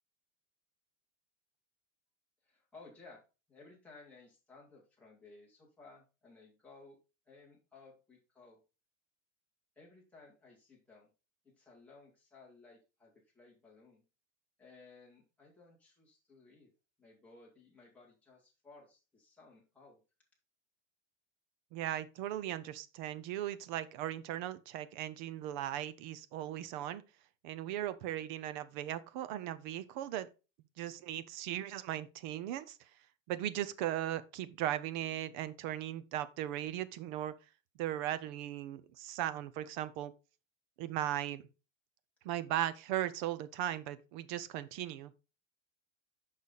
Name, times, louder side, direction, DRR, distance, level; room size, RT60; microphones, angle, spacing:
voice 1, 2.4-3.2 3.5-7.0 7.3-8.6 9.8-11.1 11.4-14.0 14.6-16.7 17.0-20.0, left 3 dB, 5° left, 2.0 m, -58 dB
voice 2, 21.7-27.0 27.4-30.3 30.8-32.8 33.3-37.3 37.8-40.1 40.8-41.4 42.2-45.1, right 12 dB, 40° right, 0.5 m, -38 dB
6.5 x 5.6 x 4.0 m
supercardioid pair, 175°, 38 cm